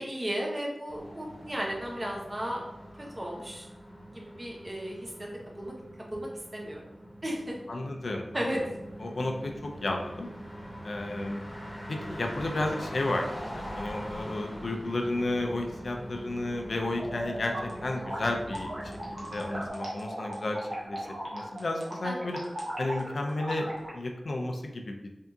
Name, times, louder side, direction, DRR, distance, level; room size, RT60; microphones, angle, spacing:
voice 1, 0.0-2.6 3.0-3.7 4.1-5.1 5.6-5.7 6.1-6.8 7.2-7.6 8.3-8.6 22.0-22.2, equal, 30° right, -2 dB, 0.9 m, -34 dB
sound 1, 0.9-19.7, equal, 20° left, 1.1 m, -43 dB
voice 2, 7.7-8.6 9.0-10.3 10.8-11.4 11.9-13.3 13.5-17.5 17.8-18.7 19.1-20.6 20.8-21.0 21.3-22.4 22.8-23.7 23.9-25.0, left 2 dB, 70° left, 2 dB, 0.5 m, -32 dB
sound 2, 16.9-23.9, right 1 dB, 65° right, 1.1 m, -38 dB
3.6 x 2.8 x 3.5 m, 0.95 s
wide cardioid pair, 90°, 0 cm